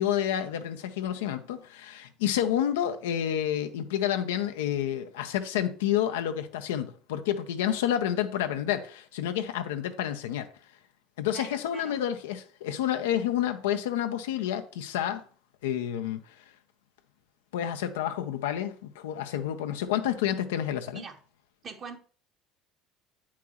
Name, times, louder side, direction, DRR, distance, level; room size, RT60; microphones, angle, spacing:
voice 1, 0.0-10.5 11.2-15.2 15.6-16.2 17.5-21.0, left 10 dB, 90° left, 0.7 m, -29 dB
voice 2, 11.3-12.0 20.9-21.2 21.6-22.0, right 5 dB, 40° right, 1.3 m, -43 dB
8.4 x 5.8 x 3.0 m
supercardioid pair, 85°, 0 cm